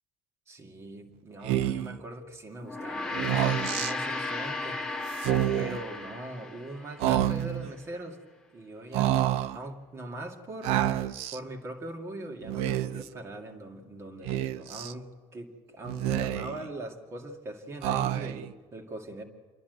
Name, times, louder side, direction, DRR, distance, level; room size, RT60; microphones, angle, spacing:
voice 1, 0.5-8.2 8.5-19.2, right 1 dB, 25° right, 2 dB, 2.2 m, -41 dB
Speech, 1.4-2.0 3.1-3.9 5.1-5.8 7.0-7.7 8.9-9.6 10.6-11.4 12.4-13.1 14.3-14.9 15.9-16.7 17.8-18.5, right 12 dB, 75° right, 0.7 m, -28 dB
Gong, 2.6-7.2, left 3 dB, 5° left, 1.5 m, -35 dB
29.0 x 11.5 x 8.0 m, 1.5 s
cardioid pair, 155°, 10 cm